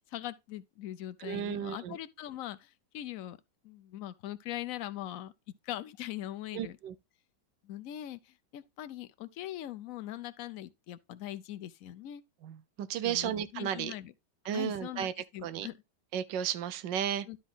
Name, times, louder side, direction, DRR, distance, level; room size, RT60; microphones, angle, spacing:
voice 1, 0.0-3.4 3.6-5.3 5.6-6.8 7.6-12.2 13.0-14.1 14.5-15.1 15.3-15.8 17.3-17.4, left 13 dB, 65° left, 0.8 m, -41 dB
voice 2, 1.2-2.0 6.5-6.9 12.4-13.9 14.4-15.1 15.4-15.7 16.1-17.3, right 9 dB, 80° right, 1.3 m, -34 dB
12.0 x 4.1 x 3.8 m
omnidirectional pair, 1.9 m